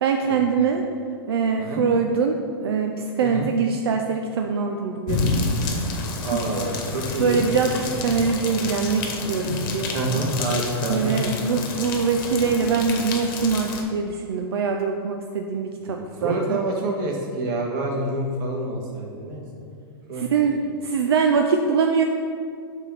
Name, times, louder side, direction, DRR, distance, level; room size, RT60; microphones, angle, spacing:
voice 1, 0.0-0.8 1.3-5.3 6.2-6.8 7.2-10.2 10.9-16.6 20.1-20.5 20.8-22.0, right 5 dB, 85° right, 3 dB, 0.5 m, -23 dB
sound 1, 5.1-13.8, left 3 dB, 55° left, 1.1 m, -29 dB
voice 2, 6.2-7.5 9.9-11.6 15.9-19.4 20.1-20.5, right 2 dB, 55° right, 0 dB, 1.4 m, -27 dB
5.1 x 4.2 x 5.7 m, 2.3 s
hypercardioid pair, 125°, 13 cm